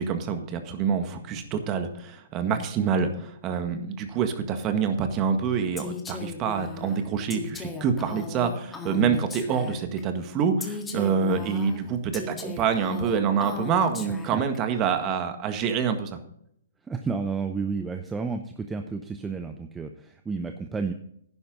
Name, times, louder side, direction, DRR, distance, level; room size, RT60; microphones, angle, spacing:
voice 1, 0.0-16.2, right 6 dB, 30° right, 8 dB, 1.7 m, -26 dB
Female speech woman speaking, 5.8-10.0 10.6-14.6, left 4 dB, 10° left, 1.8 m, -37 dB
voice 2, 16.8-20.9, right 4 dB, 10° right, 6 dB, 0.8 m, -31 dB
10.5 x 10.5 x 3.9 m, 0.70 s
hypercardioid pair, 135°, 0 cm